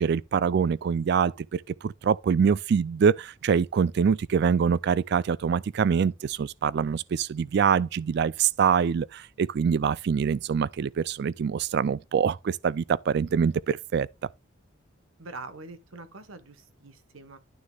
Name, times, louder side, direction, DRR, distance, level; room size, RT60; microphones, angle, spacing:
voice 1, 0.0-14.1, right 6 dB, 55° right, 0.3 m, -25 dB
voice 2, 15.2-17.4, right 3 dB, 85° right, 1.1 m, -44 dB
11.5 x 6.4 x 2.3 m
head